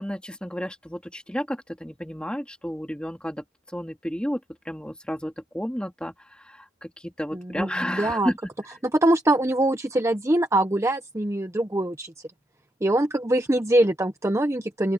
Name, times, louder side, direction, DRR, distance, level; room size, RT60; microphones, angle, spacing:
voice 1, 0.0-3.4 3.7-8.4, equal, 5° left, 3.1 m, -32 dB
voice 2, 7.3-8.3 8.8-12.1 12.8-14.9, right 1 dB, 15° right, 0.9 m, -23 dB
open air
head